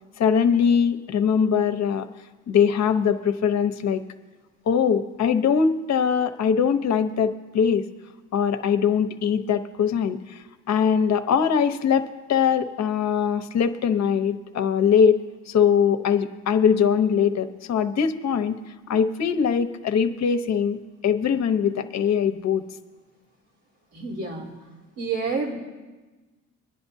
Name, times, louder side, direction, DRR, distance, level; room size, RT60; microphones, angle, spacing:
voice 1, 0.2-2.1 2.5-4.0 4.7-7.8 8.3-10.4 10.7-18.6 18.9-20.8 21.0-22.6, left 7 dB, 60° left, 8 dB, 0.9 m, -22 dB
voice 2, 23.9-24.5 25.0-25.5, right 4 dB, 90° right, -4 dB, 3.7 m, -28 dB
25.0 x 10.5 x 2.7 m, 1.2 s
cardioid pair, 90°, 30 cm